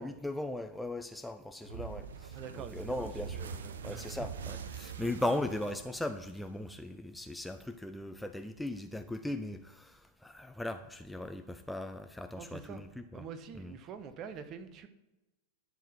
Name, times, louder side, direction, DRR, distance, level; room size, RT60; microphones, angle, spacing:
voice 1, 0.0-3.5 3.8-13.3 13.5-13.8, left 1 dB, 5° left, 0.5 m, -38 dB
sound 1, 1.7-6.8, right 6 dB, 65° right, 0.7 m, -43 dB
voice 2, 2.3-4.3 12.4-12.8 13.1-14.9, right 7 dB, 35° right, 1.1 m, -46 dB
11.0 x 4.7 x 7.4 m
figure-of-eight pair, 90°, 0 cm